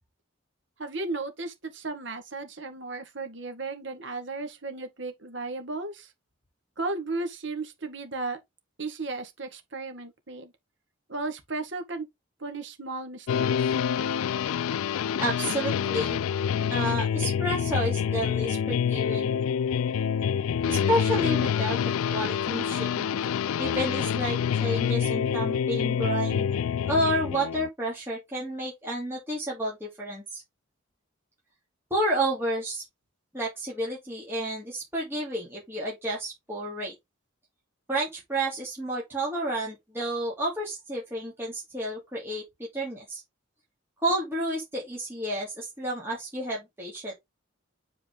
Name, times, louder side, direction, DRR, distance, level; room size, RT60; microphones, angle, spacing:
voice 1, 0.8-6.1 6.8-8.4 8.8-10.5 11.1-12.1 12.4-13.7, right 3 dB, 60° right, 1.7 m, -35 dB
sound 1, 13.3-27.7, left 8 dB, 90° left, 0.3 m, -27 dB
voice 2, 15.2-16.2 16.7-19.4 20.7-21.8 22.1-23.1 23.6-26.5 26.9-30.4 31.9-32.8 33.3-36.9 37.9-42.4 42.7-43.2 44.0-47.1, right 1 dB, 10° right, 2.5 m, -30 dB
7.8 x 4.4 x 3.5 m
head